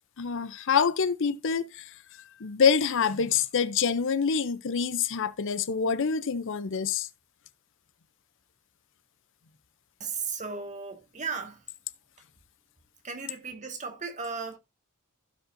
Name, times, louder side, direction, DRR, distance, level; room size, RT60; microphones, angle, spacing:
voice 1, 0.2-1.9 2.4-7.1, left 6 dB, 60° left, 0.6 m, -26 dB
voice 2, 10.0-11.6 13.0-14.6, right 5 dB, 35° right, 1.8 m, -35 dB
16.0 x 5.3 x 2.6 m
head